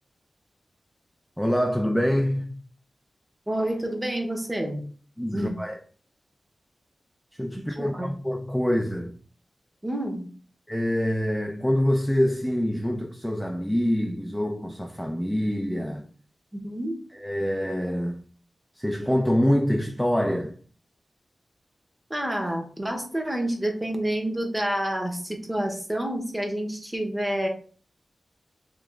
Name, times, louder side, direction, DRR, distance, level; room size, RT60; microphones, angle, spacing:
voice 1, 1.4-2.6 5.2-5.8 7.4-9.2 10.7-16.1 17.1-18.2 18.8-20.5, equal, ahead, 0.3 m, -25 dB
voice 2, 3.5-4.8 5.3-5.6 7.8-8.1 9.8-10.3 16.6-16.9 22.1-27.5, right 1 dB, 15° right, 0.8 m, -28 dB
3.1 x 2.9 x 3.5 m
wide cardioid pair, 110°, 0 cm